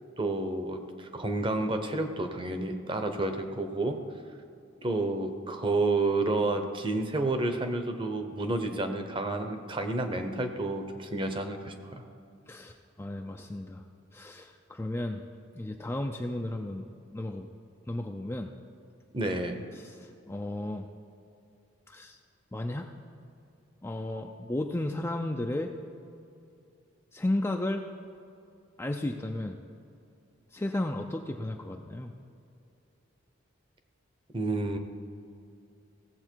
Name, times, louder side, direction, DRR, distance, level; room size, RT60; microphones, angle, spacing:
voice 1, 0.2-4.0 4.8-12.0 19.1-19.6 34.3-34.8, right 2 dB, 25° right, 6 dB, 0.8 m, -30 dB
voice 2, 12.5-13.8 14.1-15.2 15.5-16.9 17.1-17.5 17.9-18.5 19.7-20.9 21.9-22.2 22.5-22.9 23.8-25.7 27.1-27.8 28.8-29.6 30.5-32.1, left 1 dB, 10° left, 3 dB, 0.4 m, -34 dB
17.5 x 7.5 x 4.5 m, 2.6 s
head